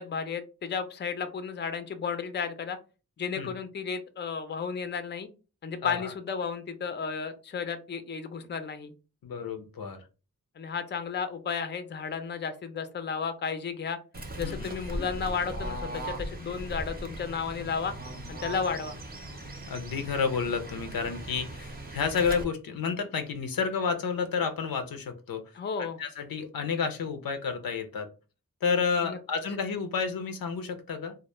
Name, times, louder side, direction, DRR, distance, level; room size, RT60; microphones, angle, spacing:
voice 1, 0.0-2.8 3.2-5.3 5.6-8.9 10.6-14.0 14.4-17.9 18.3-19.0 25.5-26.0 29.0-29.2, left 6 dB, 35° left, 10 dB, 0.4 m, -33 dB
voice 2, 5.8-6.1 9.2-10.0 14.4-14.7 19.7-25.4 25.8-28.1 28.6-31.2, left 5 dB, 85° left, 7 dB, 0.5 m, -30 dB
Fowl / Bird, 14.1-22.4, right 1 dB, 25° right, 0.6 m, -39 dB
2.1 x 2.0 x 3.0 m, 0.32 s
cardioid pair, 45°, 34 cm